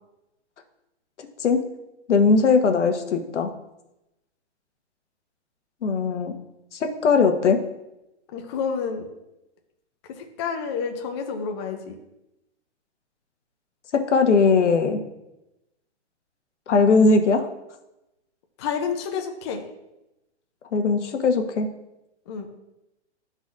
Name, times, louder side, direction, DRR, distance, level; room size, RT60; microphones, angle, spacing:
voice 1, 2.1-3.5 5.8-6.3 6.7-7.6 13.9-15.0 16.7-17.5 20.7-21.7, left 4 dB, 85° left, 6 dB, 1.1 m, -19 dB
voice 2, 8.3-9.1 10.1-12.0 18.6-19.6 22.3-22.5, left 6 dB, 25° left, 3 dB, 0.5 m, -29 dB
12.0 x 4.0 x 2.5 m, 0.93 s
hypercardioid pair, 155°, 35 cm